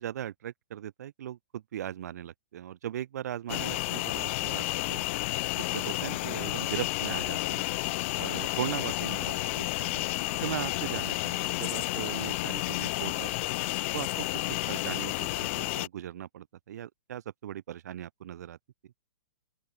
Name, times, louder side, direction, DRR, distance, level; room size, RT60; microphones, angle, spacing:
voice 1, 0.0-5.0 5.6-7.7 8.2-10.0 10.3-13.3 13.9-18.6, right 11 dB, 65° right, 1.4 m, -38 dB
sound 1, 3.5-15.9, left 21 dB, 40° left, 0.5 m, -31 dB
open air
hypercardioid pair, 145°, 9 cm